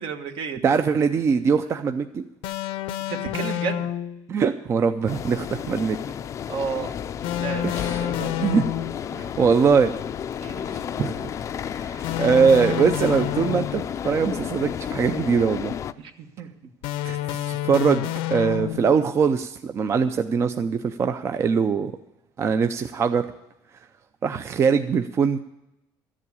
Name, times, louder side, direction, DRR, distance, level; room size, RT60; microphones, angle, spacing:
voice 1, 0.0-0.7 3.1-3.9 6.5-6.9 7.4-8.4 10.4-10.9 16.0-16.7, right 6 dB, 65° right, 6 dB, 1.4 m, -33 dB
voice 2, 0.6-2.2 4.3-6.0 7.6-8.0 8.4-8.6 9.1-9.9 10.7-11.3 11.8-15.7 17.0-21.9 22.4-23.3 24.2-25.4, right 6 dB, 30° right, 8 dB, 0.5 m, -22 dB
sound 1, 2.4-4.3 7.2-9.1 12.0-14.0 16.8-19.0, left 13 dB, 80° left, 0.7 m, -29 dB
sound 2, 5.1-15.9, left 8 dB, 35° left, 0.5 m, -32 dB
13.5 x 7.5 x 8.3 m, 0.90 s
cardioid pair, 135°, 9 cm